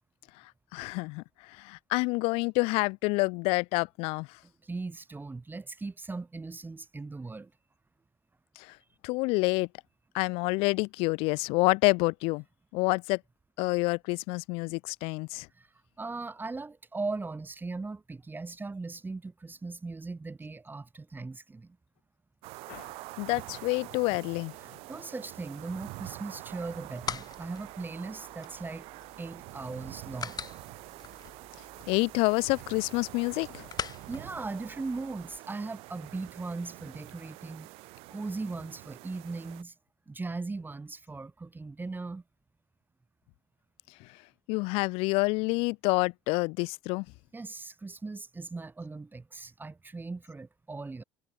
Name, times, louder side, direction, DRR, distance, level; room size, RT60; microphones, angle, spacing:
voice 1, 0.7-4.3 8.6-8.8 9.0-9.7 10.1-12.4 12.7-13.2 13.6-15.5 22.7-22.9 23.2-24.5 31.9-33.7 44.0-44.1 44.5-47.1, left 27 dB, 70° left, 2.5 m, -28 dB
voice 2, 4.6-7.5 15.5-15.7 16.0-21.8 24.6-28.9 29.2-30.4 34.1-37.7 38.1-39.7 40.1-42.2 47.3-51.0, right 3 dB, 20° right, 3.3 m, -39 dB
sound 1, 22.4-39.6, right 23 dB, 70° right, 2.7 m, -46 dB
sound 2, 26.5-35.4, left 7 dB, 40° left, 6.0 m, -44 dB
hypercardioid pair, 70°, 10 cm